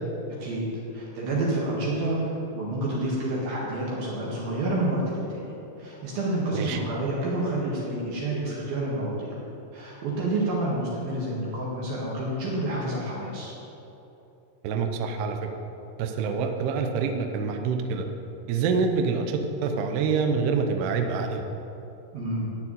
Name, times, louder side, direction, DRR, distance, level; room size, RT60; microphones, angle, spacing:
voice 1, 0.4-5.5 5.8-9.4 9.7-13.5 22.1-22.5, right 1 dB, 60° right, -5 dB, 3.0 m, -29 dB
voice 2, 14.6-15.5 16.0-18.1 18.5-21.4, right 5 dB, 85° right, 5 dB, 2.3 m, -26 dB
13.5 x 4.8 x 8.9 m, 2.9 s
omnidirectional pair, 5.8 m